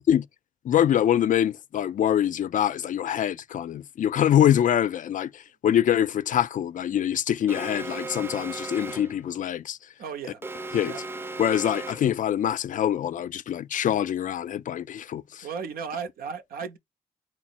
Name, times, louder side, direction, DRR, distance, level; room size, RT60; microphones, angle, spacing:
voice 1, 0.6-9.8 10.7-10.9 11.4-15.5, left 10 dB, 60° left, 0.4 m, -24 dB
Alarm, 7.5-9.2 10.4-12.2, right 3 dB, 15° right, 0.4 m, -36 dB
voice 2, 10.0-10.4 10.8-11.0 15.4-16.8, right 6 dB, 75° right, 0.7 m, -35 dB
4.3 x 2.0 x 4.2 m
supercardioid pair, 40°, 15 cm